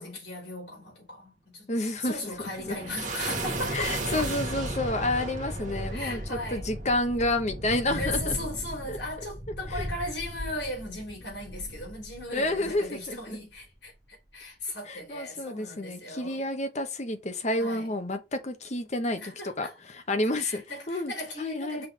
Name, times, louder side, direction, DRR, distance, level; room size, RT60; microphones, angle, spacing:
voice 1, 0.0-4.3 5.9-6.6 8.0-16.4 17.6-17.9 19.2-19.8 20.2-21.9, left 2 dB, 70° left, 3.3 m, -37 dB
voice 2, 1.7-2.8 3.7-8.3 8.9-9.0 9.7-9.9 12.3-13.4 14.9-21.1 21.4-21.8, left 1 dB, 40° left, 1.0 m, -30 dB
sound 1, 2.1-12.8, right 1 dB, 45° right, 1.5 m, -35 dB
5.6 x 3.4 x 5.3 m
head